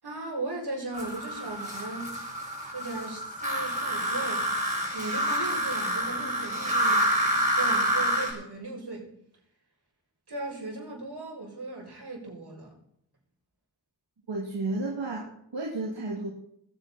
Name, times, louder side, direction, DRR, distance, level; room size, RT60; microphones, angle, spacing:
voice 1, 0.0-2.2 2.7-9.1 10.3-12.7, right 2 dB, 60° right, -2 dB, 7.2 m, -37 dB
sound 1, 0.9-8.3, equal, 15° right, 7.1 m, -28 dB
voice 2, 14.3-16.3, right 2 dB, 75° right, -2 dB, 2.7 m, -32 dB
21.5 x 9.2 x 4.4 m, 0.73 s
cardioid pair, 40°, 44 cm